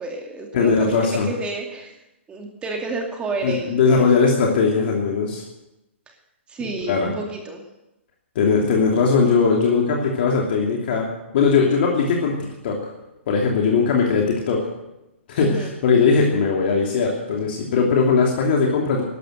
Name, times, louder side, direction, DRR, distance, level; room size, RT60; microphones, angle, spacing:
voice 1, 0.0-1.9 2.3-4.1 6.1-6.2 6.5-7.6 15.4-15.7, right 2 dB, 15° right, 2 dB, 2.5 m, -30 dB
voice 2, 0.5-1.3 3.4-5.4 6.8-7.1 8.3-11.1 11.3-12.9 13.3-14.6 15.3-19.0, left 5 dB, 50° left, -1 dB, 2.9 m, -19 dB
14.0 x 12.0 x 7.9 m, 0.93 s
hypercardioid pair, 125°, 7 cm